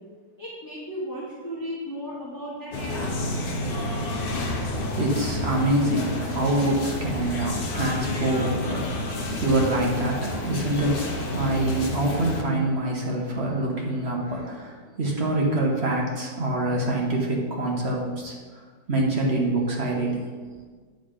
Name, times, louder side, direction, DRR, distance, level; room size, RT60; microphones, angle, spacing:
voice 1, 0.4-3.1, equal, 15° left, -7 dB, 1.1 m, -35 dB
sound 1, 2.7-12.4, left 1 dB, 45° left, 0.9 m, -30 dB
voice 2, 4.9-18.3 18.9-20.2, right 1 dB, 45° right, -2 dB, 1.3 m, -25 dB
9.3 x 3.8 x 5.0 m, 1.5 s
omnidirectional pair, 1.6 m